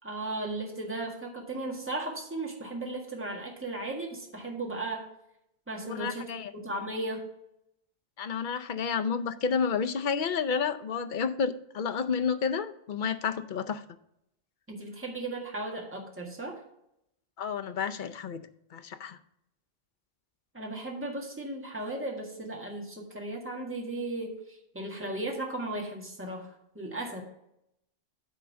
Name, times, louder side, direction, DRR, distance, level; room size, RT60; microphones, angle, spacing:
voice 1, 0.0-5.1 5.7-6.3 6.5-7.3 14.7-16.6 20.5-27.2, right 2 dB, 10° right, 0 dB, 1.7 m, -36 dB
voice 2, 5.9-6.5 8.2-13.8 17.4-18.4 18.7-19.2, left 6 dB, 55° left, 10 dB, 0.7 m, -30 dB
9.6 x 3.7 x 6.9 m, 0.78 s
omnidirectional pair, 1.1 m